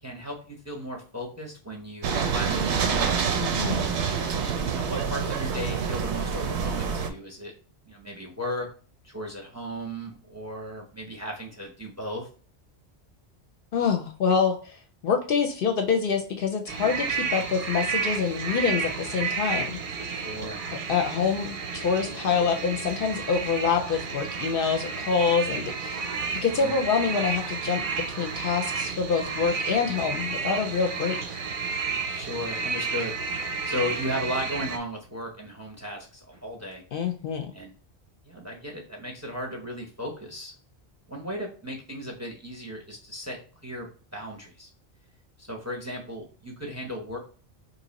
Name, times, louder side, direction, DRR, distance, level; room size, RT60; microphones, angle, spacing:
voice 1, 0.0-3.2 4.8-7.5 7.9-8.7 9.0-12.3 20.1-20.6 26.3-26.7 32.0-36.8 37.5-37.7 38.3-40.5 41.1-43.9 44.1-44.7 45.4-47.2, equal, 20° right, 1 dB, 0.6 m, -36 dB
sound 1, 2.0-7.1, right 6 dB, 80° right, 0.9 m, -27 dB
voice 2, 3.4-3.9 13.7-19.8 20.9-26.1 26.4-27.8 28.2-31.4 36.9-37.5, left 6 dB, 60° left, 4 dB, 0.7 m, -26 dB
sound 2, 16.7-34.8, right 5 dB, 55° right, 0.7 m, -31 dB
3.1 x 2.7 x 3.9 m, 0.40 s
omnidirectional pair, 1.1 m